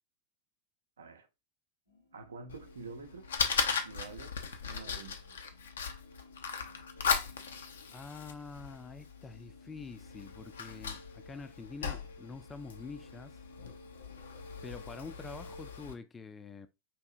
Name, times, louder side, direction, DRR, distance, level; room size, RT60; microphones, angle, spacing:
voice 1, 1.0-1.3 2.1-3.3 3.7-4.4 4.7-5.3, right 4 dB, 70° right, 0.6 m, -47 dB
sound 1, 1.9-15.6, left 3 dB, 90° left, 1.4 m, -60 dB
Fire, 2.5-15.9, left 6 dB, 65° left, 0.6 m, -38 dB
voice 2, 7.9-13.4 14.6-16.7, left 4 dB, 15° left, 0.4 m, -46 dB
4.6 x 2.7 x 2.5 m
figure-of-eight pair, 90°, 0 cm